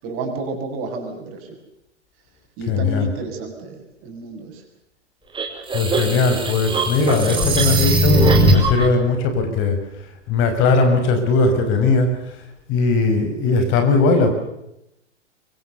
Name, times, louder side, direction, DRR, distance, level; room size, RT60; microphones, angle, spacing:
voice 1, 0.0-1.6 2.6-4.6, right 3 dB, 35° right, 3 dB, 7.4 m, -30 dB
voice 2, 2.7-3.1 5.7-9.8 10.3-12.1 12.7-14.3, left 3 dB, 35° left, 6 dB, 5.5 m, -18 dB
sound 1, 5.3-8.8, right 1 dB, 15° right, 4.7 m, -19 dB
25.0 x 25.0 x 7.0 m, 0.82 s
figure-of-eight pair, 110°, 36 cm